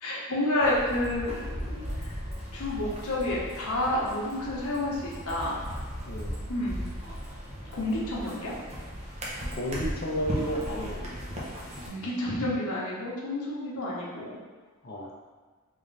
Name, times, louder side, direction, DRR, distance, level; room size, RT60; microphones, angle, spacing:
voice 1, 0.0-2.1 2.5-5.6 6.5-6.8 7.7-8.5 11.8-14.4, left 1 dB, 80° left, -6 dB, 0.9 m, -30 dB
sound 1, 0.6-11.9, equal, 30° right, 0.6 m, -37 dB
voice 2, 9.5-11.0 14.8-15.1, equal, 45° left, -2 dB, 0.6 m, -32 dB
3.6 x 2.6 x 3.2 m, 1.4 s
head